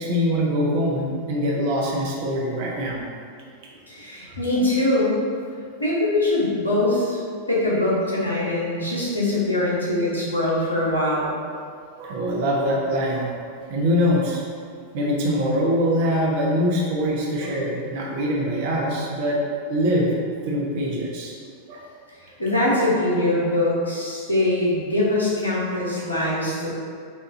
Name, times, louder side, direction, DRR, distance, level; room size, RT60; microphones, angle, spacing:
voice 1, 0.0-3.1 12.0-13.3 13.7-14.4 14.9-19.4 19.6-20.1 20.5-21.3 21.7-21.8, equal, 50° right, -2 dB, 0.8 m, -23 dB
voice 2, 3.9-5.2 5.8-7.2 7.5-11.3 22.2-26.7, left 1 dB, 80° left, -6 dB, 1.1 m, -22 dB
6.2 x 2.6 x 2.7 m, 2.2 s
figure-of-eight pair, 90°, 0 cm